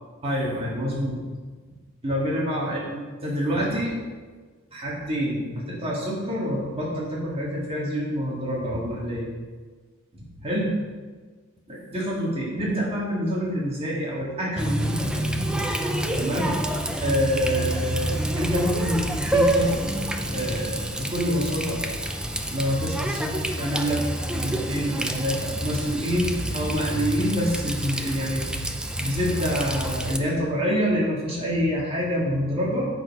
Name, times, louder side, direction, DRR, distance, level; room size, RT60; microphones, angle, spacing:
voice 1, 0.2-1.2 2.0-4.0 4.7-9.3 10.1-10.7 11.7-15.5 16.2-16.6 17.0-19.8 20.2-21.8 22.5-28.7 28.9-32.9, equal, 25° right, -5 dB, 1.9 m, -27 dB
Water tap faucet, 14.6-30.2, right 1 dB, 5° right, 0.4 m, -28 dB
8.1 x 6.6 x 4.7 m, 1.4 s
head